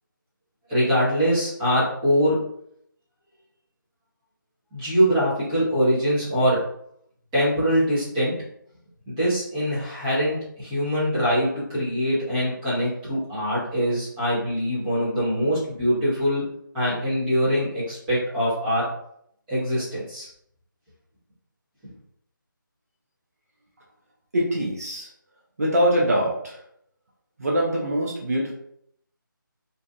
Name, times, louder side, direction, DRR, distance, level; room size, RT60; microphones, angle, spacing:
voice 1, 0.7-2.4 4.7-6.6 7.3-8.4 9.1-16.4 16.7-18.9 19.5-20.3, equal, 10° right, -11 dB, 0.8 m, -23 dB
voice 2, 24.3-25.1 25.6-26.6 27.4-28.5, equal, 45° right, -3 dB, 0.6 m, -23 dB
2.6 x 2.4 x 2.3 m, 0.70 s
figure-of-eight pair, 160°, 11 cm